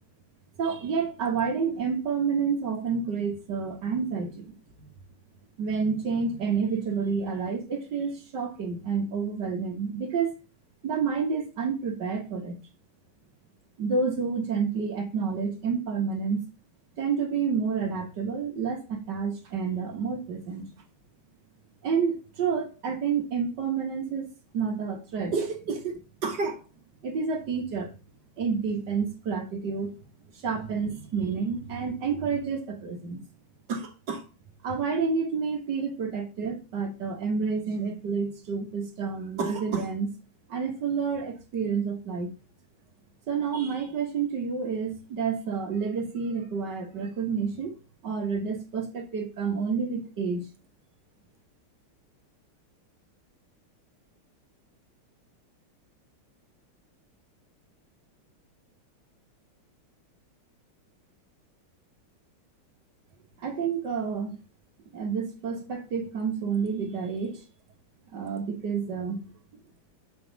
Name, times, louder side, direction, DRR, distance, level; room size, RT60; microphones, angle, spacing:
voice 1, 0.6-4.9 5.6-10.3 10.8-12.6 13.8-16.5 16.9-20.7 21.8-26.6 27.0-27.9 28.4-29.9 30.3-33.2 33.7-34.3 34.6-40.1 40.5-42.3 43.3-47.8 48.0-50.5 63.4-64.4 64.9-67.4 68.1-69.2, right 5 dB, 55° right, 1.9 m, -29 dB
7.7 x 5.7 x 4.0 m
omnidirectional pair, 2.4 m